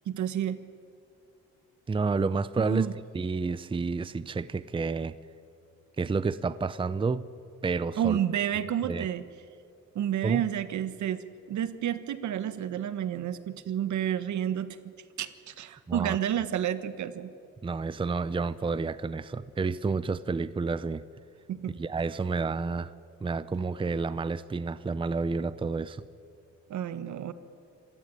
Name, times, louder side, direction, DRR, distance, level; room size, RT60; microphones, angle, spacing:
voice 1, 0.0-0.6 2.6-2.9 7.9-9.2 9.9-14.8 15.2-17.3 21.5-21.8 26.7-27.3, right 10 dB, 70° right, 12 dB, 1.4 m, -30 dB
voice 2, 1.9-2.9 3.1-5.2 6.0-7.3 7.6-8.2 8.8-9.1 10.2-10.4 15.9-16.2 17.6-21.0 21.8-22.9 23.2-26.0, right 4 dB, 15° right, 16 dB, 0.6 m, -30 dB
26.5 x 16.0 x 9.4 m, 2.5 s
cardioid pair, 90°, 30 cm